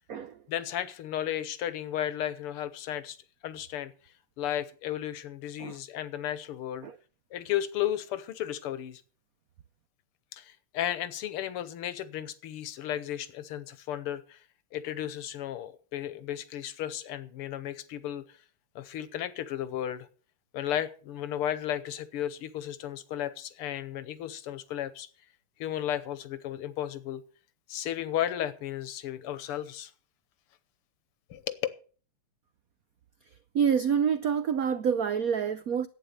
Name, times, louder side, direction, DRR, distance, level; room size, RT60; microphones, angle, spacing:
voice 1, 0.5-3.2 3.4-3.9 4.4-6.9 7.3-9.0 10.3-14.4 14.7-18.4 18.8-20.1 20.5-25.1 25.6-27.2 27.7-29.9 31.3-31.6, left 11 dB, 85° left, 1.9 m, -34 dB
voice 2, 33.5-35.9, right 7 dB, 85° right, 0.7 m, -27 dB
11.5 x 8.8 x 6.6 m
omnidirectional pair, 2.4 m